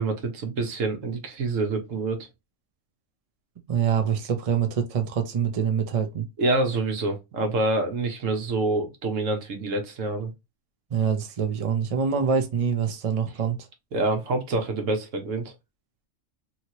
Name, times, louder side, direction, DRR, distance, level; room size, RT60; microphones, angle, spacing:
voice 1, 0.0-2.3 6.4-10.3 13.9-15.5, right 2 dB, 75° right, 1.2 m, -26 dB
voice 2, 3.7-6.3 10.9-13.6, right 7 dB, 40° right, 0.5 m, -25 dB
2.9 x 2.8 x 2.8 m
omnidirectional pair, 1.4 m